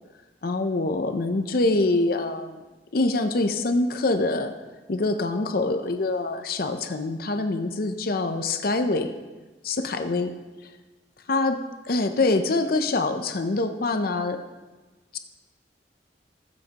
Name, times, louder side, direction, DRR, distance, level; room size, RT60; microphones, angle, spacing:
voice 1, 0.4-2.6 2.9-4.5 4.9-9.1 9.6-10.3 11.3-11.6 11.9-14.4 15.1-15.2, left 2 dB, 55° left, 7 dB, 0.6 m, -25 dB
20.5 x 7.4 x 3.0 m, 1.2 s
head